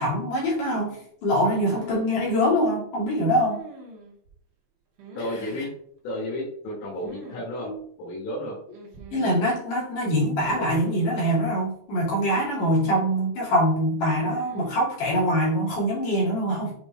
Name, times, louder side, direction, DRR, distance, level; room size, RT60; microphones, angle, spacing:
voice 1, 0.0-3.6 7.6-7.7 9.1-16.7, equal, 50° left, -5 dB, 3.2 m, -24 dB
sound 1, 1.5-2.2 3.5-4.3 5.0-5.7 7.0-7.5 7.7-7.8 8.7-9.4 10.5-11.3 12.3-13.1 14.1-14.9, right 2 dB, 65° right, 2.5 m, -43 dB
voice 2, 5.2-5.7 6.0-7.7 8.0-8.6, left 1 dB, 85° left, -4 dB, 4.2 m, -32 dB
8.4 x 3.4 x 3.6 m, 0.63 s
omnidirectional pair, 5.5 m